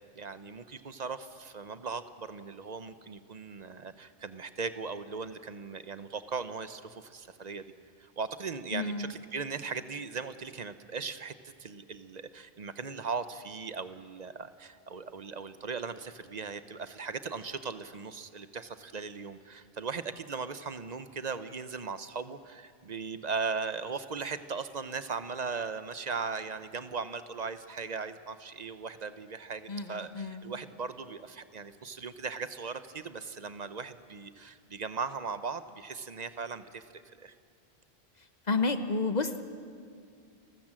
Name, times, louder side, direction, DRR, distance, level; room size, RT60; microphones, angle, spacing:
voice 1, 0.1-7.6 8.0-36.8 37.2-37.3, right 5 dB, 45° right, 12 dB, 0.8 m, -38 dB
voice 2, 8.7-9.1 29.7-30.6 38.5-39.4, left 3 dB, 40° left, 9 dB, 1.1 m, -31 dB
30.0 x 14.0 x 7.5 m, 2.2 s
omnidirectional pair, 1.1 m